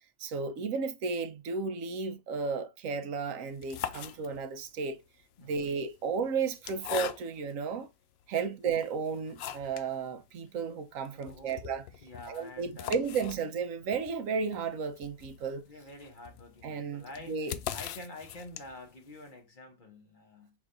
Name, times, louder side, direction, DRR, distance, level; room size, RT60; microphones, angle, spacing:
voice 1, 0.2-5.0 5.4-7.9 8.3-11.8 12.3-15.6 16.6-17.5, right 5 dB, 80° right, 1.1 m, -33 dB
sound 1, 3.4-4.7 5.5-7.6 8.2-8.3 8.8-9.9 10.2-10.3 10.6-10.7 11.0-18.9, left 10 dB, 65° left, 0.7 m, -41 dB
voice 2, 5.4-5.7 11.1-11.7 12.0-13.0 15.6-20.5, left 2 dB, 40° left, 1.0 m, -48 dB
6.1 x 3.2 x 2.5 m
omnidirectional pair, 1.4 m